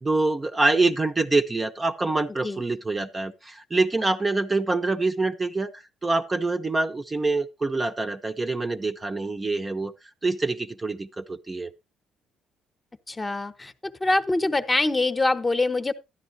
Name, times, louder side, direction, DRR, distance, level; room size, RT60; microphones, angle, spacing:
voice 1, 0.0-9.9 10.2-11.7, right 3 dB, 20° right, 0.7 m, -25 dB
voice 2, 13.1-13.7 14.0-15.9, left 2 dB, 20° left, 0.9 m, -24 dB
12.5 x 10.0 x 2.6 m
cardioid pair, 105°, 0 cm